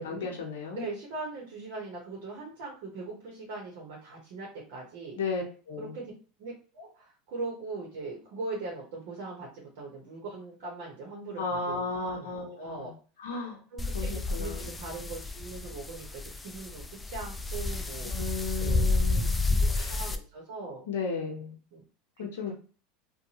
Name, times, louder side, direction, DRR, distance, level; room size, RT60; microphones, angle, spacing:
voice 1, 0.0-0.8 5.2-5.9 11.4-12.9 13.2-13.6 13.9-14.8 18.0-19.4 19.7-20.0 20.9-21.5 22.2-22.5, left 4 dB, 80° left, 1 dB, 0.6 m, -35 dB
voice 2, 0.7-5.2 5.8-6.1 6.4-12.3 12.6-12.9 13.7-18.1 18.6-19.0 19.7-20.9 21.1-21.3 21.7-21.8 22.2-22.5, right 3 dB, 65° right, -2 dB, 0.9 m, -40 dB
sound 1, 13.8-20.2, left 3 dB, 15° left, 0.3 m, -30 dB
2.6 x 2.2 x 2.8 m, 0.37 s
hypercardioid pair, 95°, 0 cm